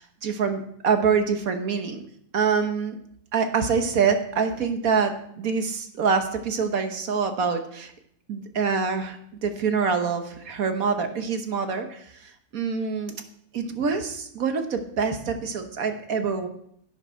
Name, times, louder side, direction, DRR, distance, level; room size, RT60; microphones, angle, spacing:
voice 1, 0.0-2.0 2.3-3.0 3.3-7.9 8.3-13.1 13.5-16.5, right 5 dB, 60° right, 6 dB, 1.5 m, -25 dB
11.5 x 9.2 x 4.4 m, 0.68 s
omnidirectional pair, 1.8 m